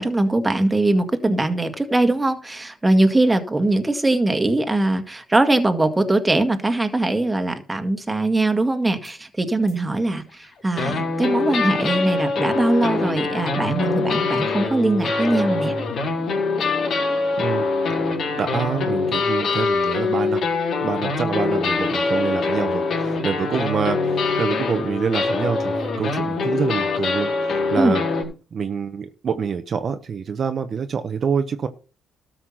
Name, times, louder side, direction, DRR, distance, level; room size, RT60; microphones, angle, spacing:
voice 1, 0.0-10.2 10.6-15.7 27.8-28.0, right 2 dB, 15° right, 1.9 m, -21 dB
sound 1, 9.0-9.1 9.7-9.8 10.8-28.2, left 3 dB, 60° left, 4.1 m, -23 dB
voice 2, 17.4-17.7 18.4-20.4 20.8-28.0 28.5-31.7, right 6 dB, 50° right, 1.1 m, -26 dB
13.0 x 5.9 x 5.8 m
cardioid pair, 90°, 0 cm